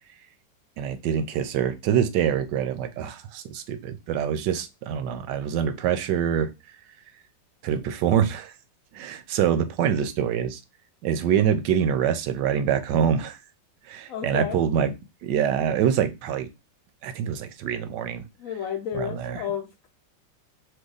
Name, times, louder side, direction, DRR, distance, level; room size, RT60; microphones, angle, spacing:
voice 1, 0.8-6.5 7.6-8.5 8.9-10.6 11.0-13.4 13.9-14.9 15.2-16.5 17.0-18.3 18.9-19.4, right 8 dB, 75° right, 1.2 m, -25 dB
voice 2, 14.1-14.6 18.4-19.9, left 9 dB, 90° left, 0.7 m, -32 dB
5.2 x 2.2 x 3.8 m
omnidirectional pair, 2.0 m